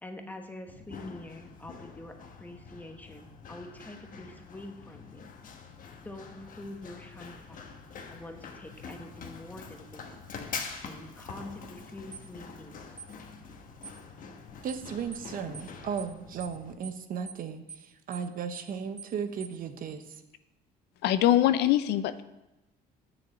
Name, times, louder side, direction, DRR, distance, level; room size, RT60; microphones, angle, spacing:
voice 1, 0.0-5.3 6.0-7.7 8.1-10.1 10.8-12.8, left 1 dB, 10° left, 5 dB, 1.2 m, -45 dB
Run, 0.7-16.7, left 5 dB, 55° left, 1.2 m, -45 dB
sound 1, 12.1-12.3 13.0-13.1 13.8-14.0 14.7-14.9 15.1-15.3 15.5-15.7 16.0-16.1 16.4-16.6 16.8-17.0 17.3-17.4 17.7-17.9 18.1-18.3 18.5-18.7 19.0-19.1 19.4-19.6, right 6 dB, 20° right, 0.6 m, -45 dB
voice 2, 14.6-20.2, right 6 dB, 55° right, 9 dB, 0.9 m, -36 dB
voice 3, 21.0-22.2, left 12 dB, 80° left, 13 dB, 0.6 m, -23 dB
7.6 x 6.5 x 7.1 m, 0.95 s
cardioid pair, 110°, 17 cm